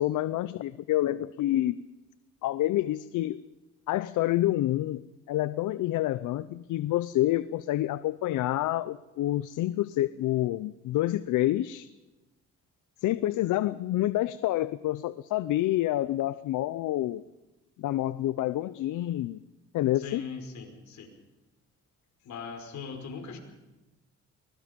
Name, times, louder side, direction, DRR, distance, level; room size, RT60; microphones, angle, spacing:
voice 1, 0.0-1.8 2.4-3.4 3.9-5.0 5.3-11.9 13.0-17.2 17.8-19.4 19.7-20.2, left 14 dB, 85° left, 15 dB, 0.7 m, -28 dB
voice 2, 20.0-21.1 22.2-23.4, left 5 dB, 65° left, 4 dB, 5.3 m, -40 dB
24.0 x 21.0 x 5.3 m, 1.1 s
cardioid pair, 90°, 30 cm